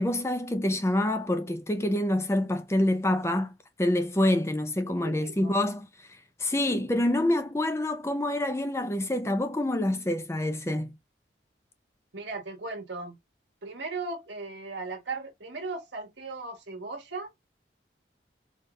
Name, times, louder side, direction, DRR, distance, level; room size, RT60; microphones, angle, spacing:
voice 1, 0.0-3.5 3.8-5.9 6.4-10.9, left 1 dB, 15° left, 0.4 m, -26 dB
voice 2, 4.8-5.5 12.1-13.2 13.6-17.3, right 3 dB, 70° right, 1.3 m, -37 dB
4.6 x 2.4 x 3.0 m
head